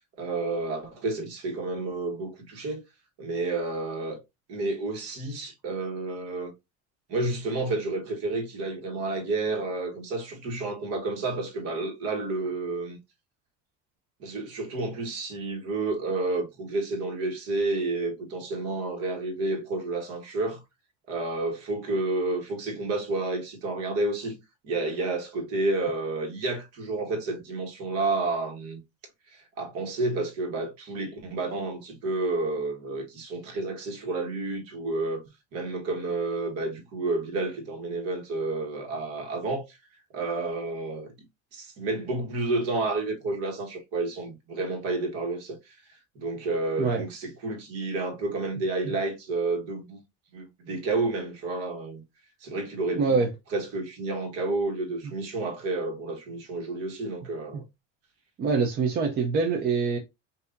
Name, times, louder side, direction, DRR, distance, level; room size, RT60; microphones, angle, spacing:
voice 1, 0.2-2.8 3.2-4.2 4.5-6.5 7.1-13.0 14.2-20.6 21.1-24.4 24.6-28.8 29.3-35.2 35.5-39.8 40.1-41.1 41.5-45.7 46.1-50.0 50.3-52.0 52.4-53.2 53.5-57.6, right 2 dB, 50° right, 1.5 m, -30 dB
voice 2, 52.9-53.3 58.4-60.0, right 4 dB, 30° right, 0.6 m, -24 dB
5.7 x 2.7 x 2.6 m
cardioid pair, 170°, 32 cm